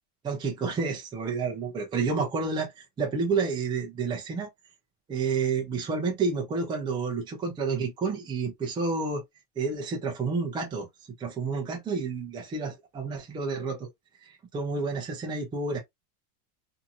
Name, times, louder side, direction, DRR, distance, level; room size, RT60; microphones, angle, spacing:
voice 1, 0.2-4.5 5.1-9.2 9.6-10.9 11.2-13.9 14.2-15.8, right 4 dB, 10° right, 0.5 m, -30 dB
2.8 x 2.7 x 2.2 m
supercardioid pair, 160°, 44 cm